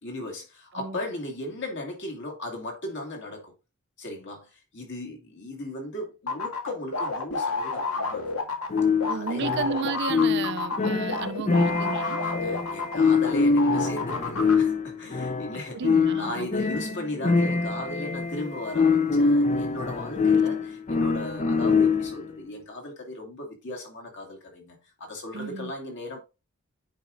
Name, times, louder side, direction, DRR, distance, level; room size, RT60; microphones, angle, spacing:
voice 1, 0.0-3.5 4.0-8.3 9.1-9.5 12.2-15.8 16.1-26.2, left 1 dB, 60° left, 2.3 m, -37 dB
sound 1, 6.3-13.3 13.6-14.5, left 4 dB, 80° left, 1.7 m, -30 dB
sound 2, 8.7-22.3, left 4 dB, 35° left, 0.6 m, -24 dB
voice 2, 9.1-12.2 15.5-16.7 20.3-20.4 25.3-25.7, right 5 dB, 55° right, 0.5 m, -33 dB
9.3 x 5.0 x 2.6 m
head